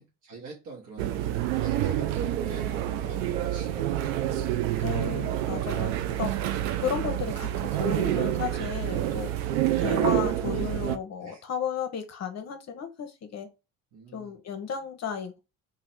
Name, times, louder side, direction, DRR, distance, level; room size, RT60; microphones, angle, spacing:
voice 1, 0.0-5.1 10.1-10.9 11.2-11.4 13.9-14.3, right 3 dB, 50° right, 1.3 m, -45 dB
sound 1, 1.0-11.0, right 12 dB, 70° right, 0.5 m, -28 dB
voice 2, 4.8-6.6 6.8-9.3 9.8-13.5 14.1-15.4, left 7 dB, 40° left, 0.7 m, -34 dB
3.0 x 2.6 x 4.3 m
figure-of-eight pair, 50°, 41 cm